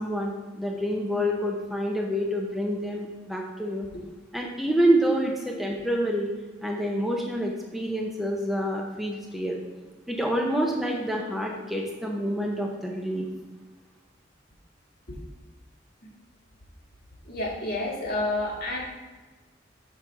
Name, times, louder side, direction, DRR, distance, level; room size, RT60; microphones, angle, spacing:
voice 1, 0.0-3.9 4.3-6.3 6.6-9.6 10.1-13.3, equal, ahead, -1 dB, 0.7 m, -27 dB
voice 2, 17.2-18.8, left 2 dB, 55° left, -2 dB, 1.7 m, -29 dB
6.1 x 4.1 x 5.9 m, 1.3 s
head